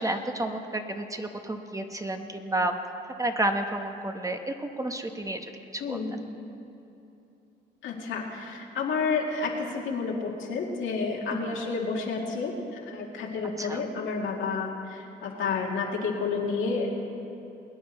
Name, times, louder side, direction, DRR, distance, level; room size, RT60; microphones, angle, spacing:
voice 1, 0.0-2.8 3.2-5.4 5.7-6.0 11.3-11.4 13.6-13.8, right 1 dB, 15° right, 5 dB, 0.9 m, -30 dB
voice 2, 5.8-6.1 7.8-12.5 12.9-17.1, left 4 dB, 75° left, -1 dB, 2.1 m, -30 dB
22.0 x 9.5 x 4.4 m, 2.8 s
cardioid pair, 90°, 20 cm